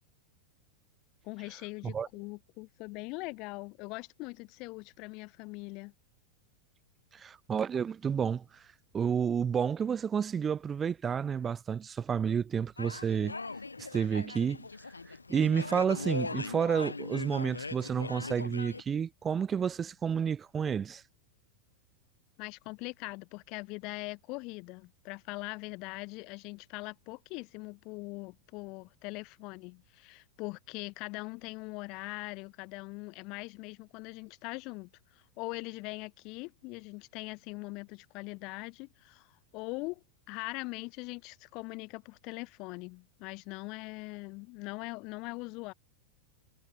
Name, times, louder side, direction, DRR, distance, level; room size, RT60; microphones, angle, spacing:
voice 1, 1.2-5.9 22.4-45.7, left 26 dB, 40° left, 1.6 m, -42 dB
voice 2, 7.1-8.6 8.9-13.4 13.8-14.7 15.1-21.0, right 7 dB, 20° right, 0.8 m, -30 dB
sound 1, 12.8-18.8, left 3 dB, 80° left, 3.4 m, -40 dB
figure-of-eight pair, 90°, 0 cm